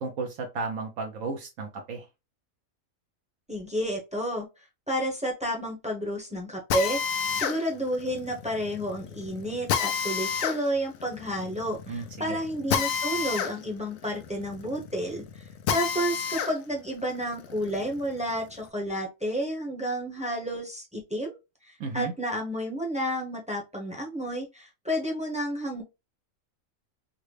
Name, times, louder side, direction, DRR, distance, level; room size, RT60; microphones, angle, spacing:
voice 1, 0.0-2.1 11.9-12.4 21.8-22.1, right 4 dB, 70° right, 3 dB, 1.1 m, -34 dB
voice 2, 3.5-4.4 4.9-7.0 7.3-15.4 15.7-21.3 21.7-25.8, equal, 5° right, 0 dB, 0.7 m, -31 dB
Drill, 6.7-16.5 17.0-18.6, left 7 dB, 75° left, 1.0 m, -31 dB
3.9 x 2.1 x 3.2 m, 0.24 s
omnidirectional pair, 1.4 m